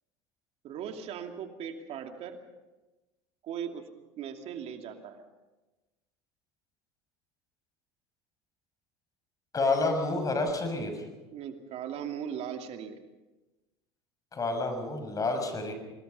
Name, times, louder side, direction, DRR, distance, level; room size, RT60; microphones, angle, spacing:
voice 1, 0.6-2.4 3.4-3.8 4.2-5.3 11.3-13.0, right 8 dB, 50° right, 5 dB, 2.6 m, -38 dB
voice 2, 9.5-11.0 14.3-15.7, left 3 dB, 25° left, 6 dB, 6.3 m, -29 dB
26.0 x 20.0 x 5.5 m, 1.1 s
hypercardioid pair, 90°, 14 cm